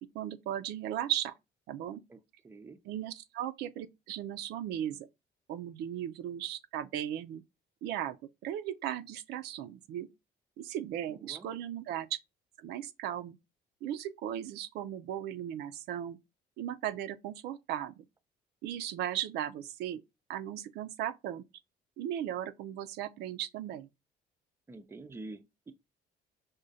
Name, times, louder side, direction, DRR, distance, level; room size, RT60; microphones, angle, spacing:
voice 1, 0.1-1.3 1.7-2.0 2.9-5.1 5.5-7.4 7.8-8.2 8.4-10.1 10.6-12.1 12.6-13.4 13.8-16.2 16.6-18.0 18.6-20.0 20.3-21.4 22.0-23.9, right 11 dB, 80° right, 0.4 m, -37 dB
voice 2, 2.1-2.8 11.1-11.5 24.7-25.7, right 2 dB, 15° right, 0.4 m, -47 dB
4.9 x 2.1 x 2.6 m
cardioid pair, 110°, 17 cm